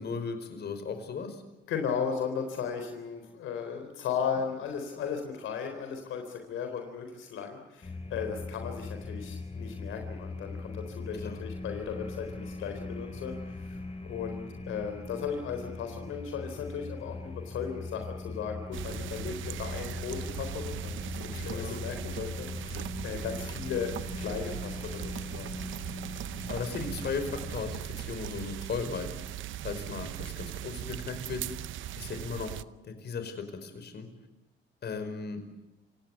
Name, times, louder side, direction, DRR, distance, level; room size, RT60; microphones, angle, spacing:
voice 1, 0.0-1.4 11.2-11.4 21.3-21.8 26.5-29.1 29.6-31.4 32.0-32.6 32.8-34.1 34.8-35.4, left 5 dB, 55° left, 8 dB, 5.2 m, -36 dB
voice 2, 1.7-25.6, left 6 dB, 85° left, 5 dB, 4.0 m, -36 dB
sound 1, 7.8-27.8, left 3 dB, 30° left, 3.9 m, -40 dB
sound 2, 18.7-32.6, right 13 dB, 80° right, 0.8 m, -39 dB
28.0 x 17.5 x 8.3 m, 1.0 s
cardioid pair, 90°, 20 cm